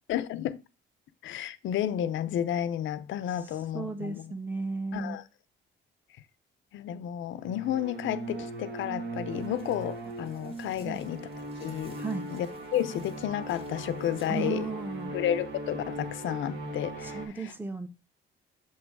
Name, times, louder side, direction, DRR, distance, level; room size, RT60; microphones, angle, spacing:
voice 1, 0.1-0.6 1.2-4.3 4.9-5.2 6.7-11.3 11.6-12.0 12.3-14.7 15.1-17.5, left 11 dB, 75° left, 0.6 m, -32 dB
voice 2, 3.7-5.2 10.8-11.0 11.9-12.3 14.3-15.2 17.0-17.9, right 4 dB, 10° right, 1.0 m, -34 dB
sound 1, 7.4-17.3, right 2 dB, 60° right, 1.4 m, -39 dB
sound 2, 9.3-14.5, right 1 dB, 30° right, 1.8 m, -56 dB
7.0 x 3.0 x 4.5 m
cardioid pair, 90°, 20 cm